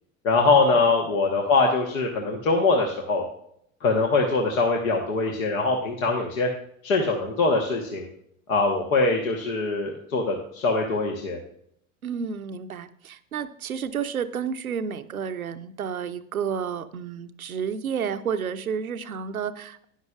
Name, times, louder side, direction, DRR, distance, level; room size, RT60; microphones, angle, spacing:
voice 1, 0.2-3.2 3.8-6.5 6.8-8.1 8.5-11.4, left 3 dB, 75° left, 1 dB, 1.4 m, -23 dB
voice 2, 12.0-19.8, right 7 dB, 90° right, 11 dB, 0.6 m, -31 dB
12.0 x 10.5 x 2.4 m, 0.71 s
figure-of-eight pair, 75°, 41 cm